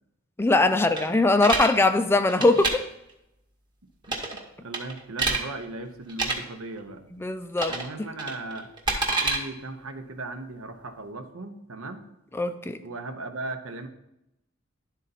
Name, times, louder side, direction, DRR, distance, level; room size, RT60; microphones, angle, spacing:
voice 1, 0.4-2.8 7.1-8.1 12.3-12.8, left 2 dB, 10° left, 10 dB, 0.3 m, -22 dB
sound 1, 1.0-1.7 2.3-2.7 4.0-4.4 4.7-5.4 6.1-6.4 7.6-7.9 8.2-9.4, right 3 dB, 20° right, 1.0 m, -27 dB
voice 2, 4.6-7.0 7.7-8.7 9.2-12.1 12.8-13.9, right 2 dB, 85° right, 6 dB, 0.9 m, -37 dB
11.0 x 4.1 x 4.0 m, 0.85 s
head